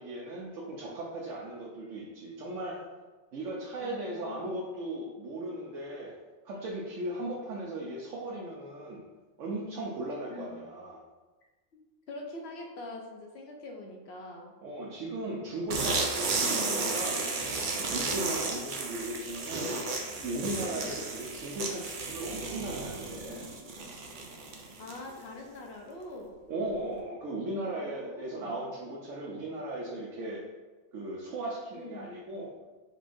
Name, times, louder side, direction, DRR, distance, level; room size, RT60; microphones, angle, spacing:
voice 1, 0.0-2.8 3.3-6.1 6.4-9.0 9.4-11.0 14.6-17.3 17.8-19.8 20.2-23.5 26.5-30.4 30.9-32.5, right 1 dB, 85° right, -4 dB, 1.1 m, -37 dB
voice 2, 3.8-4.6 10.3-10.5 11.7-11.8 12.1-14.5 20.7-21.0 24.8-26.4 27.7-28.7 31.7-32.1, left 2 dB, 65° left, 1 dB, 0.8 m, -44 dB
sound 1, 15.7-25.2, right 3 dB, 55° right, 0.6 m, -33 dB
5.4 x 3.2 x 2.6 m, 1.2 s
omnidirectional pair, 1.3 m